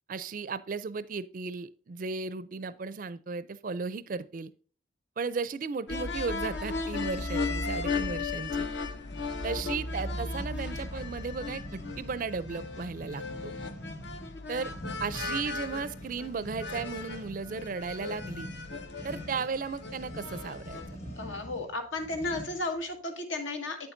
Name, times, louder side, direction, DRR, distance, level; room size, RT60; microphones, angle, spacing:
voice 1, 0.1-4.5 5.2-8.7 9.4-13.5 14.5-14.7 15.0-18.5 19.0-20.8, right 4 dB, 45° right, 16 dB, 0.4 m, -35 dB
sound 1, 5.9-21.0, left 3 dB, 60° left, 0.8 m, -36 dB
sound 2, 9.1-22.8, equal, 30° left, 2.0 m, -45 dB
voice 2, 21.2-23.8, left 2 dB, 75° left, 6 dB, 1.7 m, -34 dB
8.8 x 7.1 x 2.6 m, 0.42 s
head